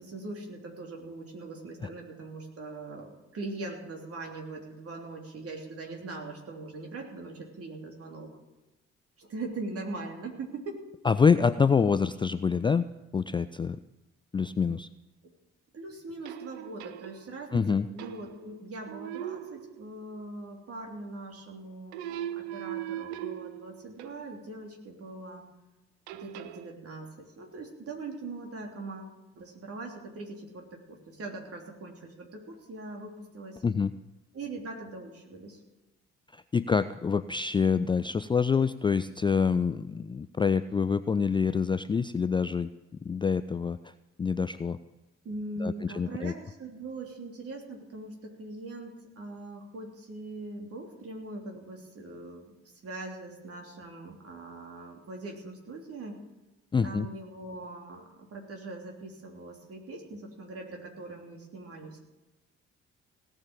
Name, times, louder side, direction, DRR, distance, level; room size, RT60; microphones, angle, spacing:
voice 1, 0.0-8.3 9.2-10.8 15.7-25.5 26.1-33.6 34.3-35.6 45.2-52.5 52.8-56.2 56.8-62.0, right 2 dB, 45° right, 0 dB, 3.2 m, -41 dB
voice 2, 11.0-12.8 13.1-13.8 14.3-14.9 17.5-17.9 33.6-33.9 36.3-42.7 43.0-43.8 44.2-44.8 45.6-46.3 56.7-57.1, left 5 dB, 15° left, 13 dB, 0.4 m, -26 dB
sound 1, 16.3-17.5 18.0-18.6 18.9-20.2 21.9-24.4 26.1-26.7, right 11 dB, 70° right, 0.7 m, -40 dB
17.5 x 6.9 x 8.9 m, 1.1 s
figure-of-eight pair, 45°, 34 cm